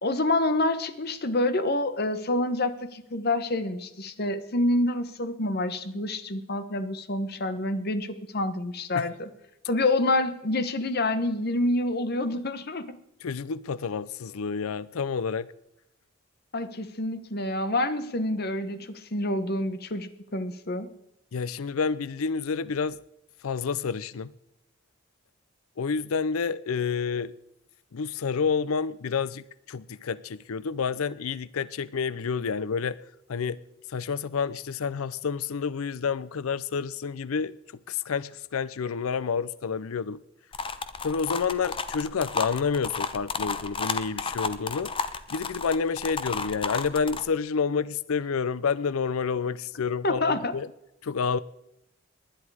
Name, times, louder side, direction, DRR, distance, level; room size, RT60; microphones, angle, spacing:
voice 1, 0.0-9.3 9.7-13.0 16.5-20.9 50.0-50.5, left 2 dB, 50° left, 1.1 m, -27 dB
voice 2, 13.2-15.5 21.3-23.0 23.4-24.3 25.8-27.3 27.9-33.0 33.3-33.6 33.9-37.6 37.9-40.2 41.0-44.9 45.3-50.7 51.0-51.4, left 5 dB, 90° left, 0.5 m, -29 dB
sound 1, 40.5-47.2, left 4 dB, 25° left, 0.7 m, -32 dB
19.5 x 10.5 x 4.8 m
head